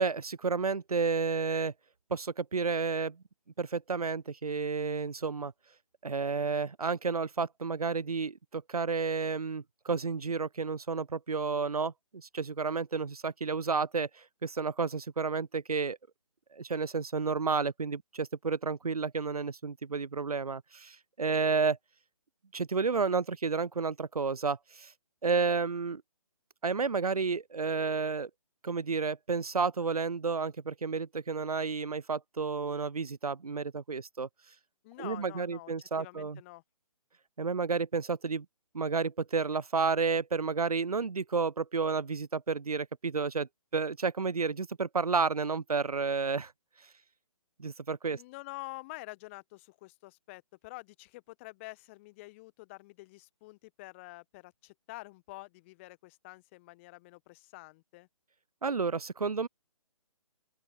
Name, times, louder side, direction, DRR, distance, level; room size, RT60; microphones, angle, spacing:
voice 1, 0.0-1.7 2.1-3.2 3.6-5.5 6.0-16.0 16.5-21.8 22.5-24.9 25.2-26.0 26.6-28.3 28.6-34.3 35.0-36.4 37.4-38.5 38.7-46.5 47.6-48.2 58.6-59.5, right 4 dB, 85° right, 0.4 m, -31 dB
voice 2, 34.8-36.6 48.1-58.1, left 22 dB, 20° left, 1.2 m, -47 dB
open air
figure-of-eight pair, 140°, 18 cm